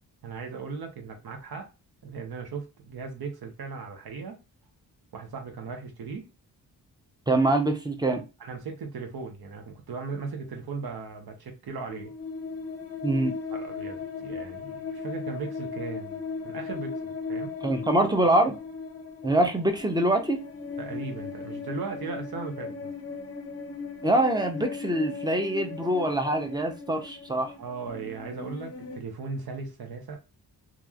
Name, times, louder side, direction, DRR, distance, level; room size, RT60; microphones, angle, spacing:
voice 1, 0.2-1.7 2.0-4.4 5.1-6.3 8.4-12.1 13.5-16.2 16.4-17.5 20.8-22.9 27.6-30.2, right 4 dB, 70° right, 1.0 m, -37 dB
voice 2, 7.3-8.2 13.0-13.3 17.6-18.6 19.2-20.4 24.0-27.5, right 1 dB, 10° right, 0.6 m, -24 dB
sound 1, 11.9-29.0, left 5 dB, 40° left, 0.6 m, -37 dB
2.9 x 2.5 x 2.3 m
cardioid pair, 75°, 39 cm